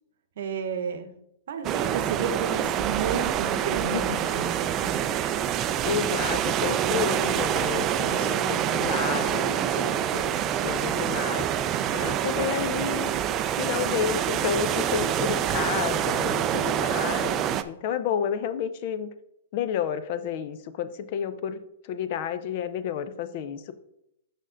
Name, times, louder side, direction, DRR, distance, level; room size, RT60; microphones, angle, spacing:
voice 1, 0.4-1.1 1.5-5.1 8.1-9.0, right 6 dB, 70° right, 9 dB, 0.9 m, -32 dB
sound 1, 1.6-17.6, right 10 dB, 30° right, 0.4 m, -26 dB
voice 2, 5.8-11.5 11.9-13.1 13.6-19.1 19.5-23.7, left 8 dB, 50° left, 12 dB, 0.5 m, -31 dB
6.4 x 5.2 x 3.8 m, 0.79 s
hypercardioid pair, 140°, 0 cm